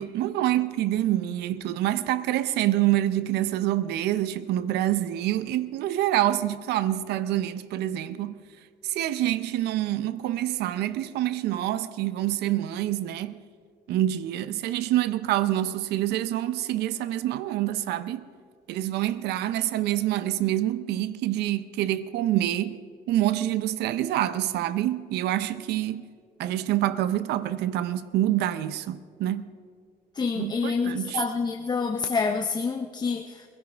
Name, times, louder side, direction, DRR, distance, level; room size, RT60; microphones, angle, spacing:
voice 1, 0.0-8.4 8.8-13.4 13.9-18.2 18.7-22.8 23.1-26.1 26.4-29.5 30.4-31.2, right 13 dB, 80° right, 0.7 m, -26 dB
voice 2, 30.2-33.4, left 5 dB, 25° left, 0.8 m, -27 dB
22.0 x 16.5 x 3.4 m
cardioid pair, 110°, 17 cm